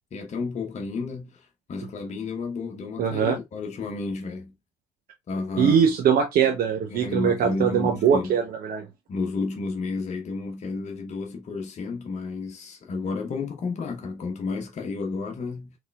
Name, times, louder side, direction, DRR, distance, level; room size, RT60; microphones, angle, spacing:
voice 1, 0.1-4.5 5.3-5.8 6.9-8.4 9.1-15.8, left 4 dB, 35° left, 0.9 m, -31 dB
voice 2, 3.0-3.3 5.6-8.9, right 7 dB, 50° right, 0.8 m, -22 dB
4.1 x 3.3 x 2.3 m
hypercardioid pair, 55°, 19 cm